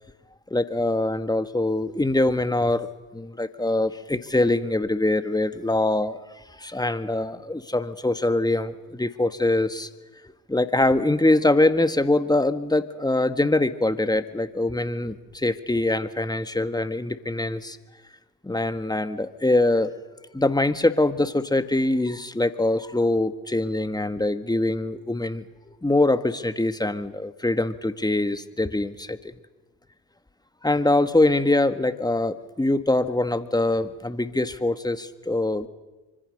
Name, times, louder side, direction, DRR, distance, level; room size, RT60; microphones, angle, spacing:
voice 1, 0.5-6.2 6.6-9.9 10.5-17.8 18.4-19.9 20.3-25.4 25.8-29.4 30.6-35.7, left 2 dB, 10° left, 11 dB, 1.7 m, -23 dB
25.5 x 25.0 x 6.7 m, 1.2 s
hypercardioid pair, 60°, 43 cm